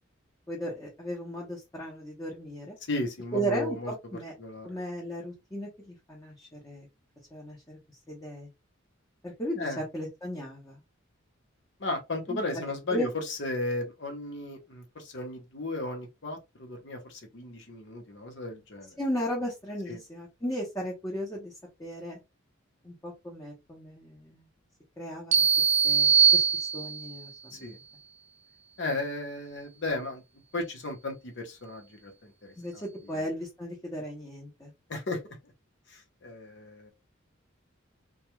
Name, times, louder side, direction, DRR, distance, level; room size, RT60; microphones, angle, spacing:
voice 1, 0.5-2.8 3.3-4.3 4.6-6.9 7.3-7.8 8.1-8.5 9.2-10.8 12.3-12.4 12.9-13.1 19.0-21.5 21.8-22.2 22.8-24.5 25.0-27.7 32.6-34.7, equal, 15° left, 0.7 m, -36 dB
voice 2, 2.9-3.9 4.4-4.8 9.6-9.8 11.8-19.0 19.9-20.0 27.5-27.8 28.8-30.2 30.5-32.8 33.1-33.2 34.9-35.2 35.9-36.9, left 2 dB, 60° left, 0.9 m, -35 dB
sound 1, 25.3-27.2, right 7 dB, 35° right, 0.3 m, -22 dB
2.3 x 2.3 x 2.9 m
head